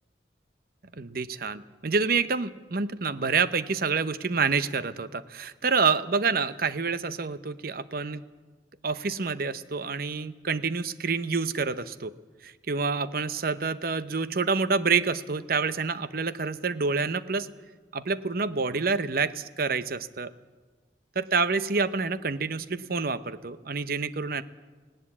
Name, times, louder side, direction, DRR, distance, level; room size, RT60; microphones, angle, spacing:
voice 1, 1.0-8.2 8.8-12.1 12.4-17.5 17.9-20.3 21.2-24.4, right 4 dB, 55° right, 14 dB, 0.8 m, -27 dB
18.5 x 18.0 x 8.5 m, 1.3 s
head